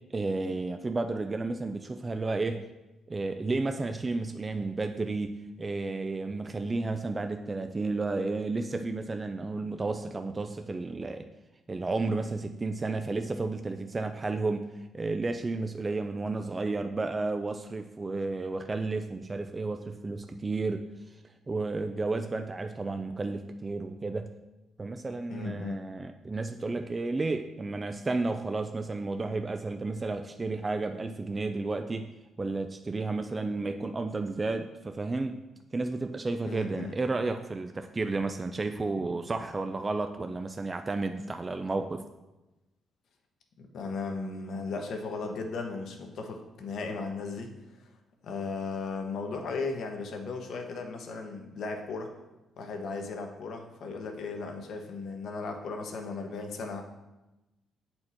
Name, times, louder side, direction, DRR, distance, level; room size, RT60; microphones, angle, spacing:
voice 1, 0.1-2.6 3.1-11.3 11.7-14.7 14.9-20.9 21.5-24.3 24.8-32.1 32.4-35.4 35.7-42.0, right 3 dB, 25° right, 7 dB, 0.3 m, -32 dB
voice 2, 25.3-25.8 36.4-36.9 43.6-47.5 47.8-47.9 48.2-52.1 52.6-56.8, left 4 dB, 70° left, 3 dB, 1.0 m, -36 dB
7.7 x 4.4 x 4.3 m, 1.0 s
cardioid pair, 90°, 0 cm